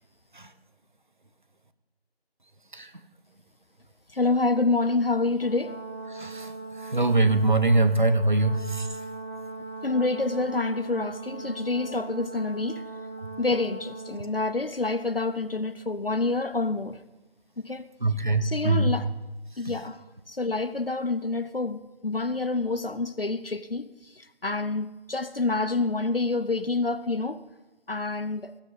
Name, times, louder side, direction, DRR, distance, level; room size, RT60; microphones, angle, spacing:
voice 1, 4.1-5.8 9.8-12.8 13.4-17.0 17.6-17.9 18.4-19.1 19.6-27.4 27.9-28.5, left 3 dB, 65° left, 0.8 m, -27 dB
Brass instrument, 5.4-14.3, right 3 dB, 75° right, 3.0 m, -39 dB
voice 2, 6.1-6.5 6.9-8.9 18.0-18.9 19.7-19.8, right 2 dB, 50° right, 1.0 m, -22 dB
20.0 x 9.8 x 5.5 m
figure-of-eight pair, 170°, 32 cm